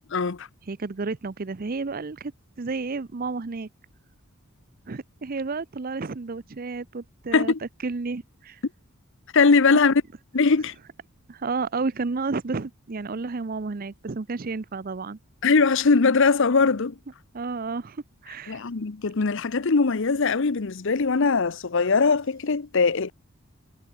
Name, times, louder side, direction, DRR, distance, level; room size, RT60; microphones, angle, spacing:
voice 1, 0.1-0.5 7.3-7.6 9.3-10.0 10.3-10.7 15.4-16.9 18.5-23.1, left 4 dB, 60° left, 0.7 m, -21 dB
voice 2, 0.7-2.3 2.6-3.7 4.9-7.5 7.8-8.6 11.3-15.2 17.3-18.6, right 4 dB, 40° right, 0.6 m, -31 dB
head